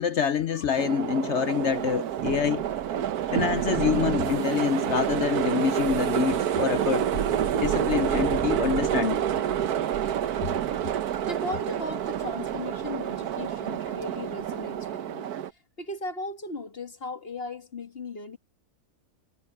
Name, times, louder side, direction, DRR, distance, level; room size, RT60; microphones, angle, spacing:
voice 1, 0.0-2.7 3.3-7.1 7.6-9.2, left 7 dB, 65° left, 0.7 m, -26 dB
sound 1, 0.8-15.5, right 9 dB, 70° right, 1.3 m, -28 dB
Thunder, 1.7-14.9, right 12 dB, 90° right, 1.4 m, -38 dB
sound 2, 7.3-9.8, left 2 dB, 15° left, 0.6 m, -46 dB
voice 2, 11.3-18.4, left 2 dB, 35° left, 1.9 m, -37 dB
omnidirectional pair, 1.8 m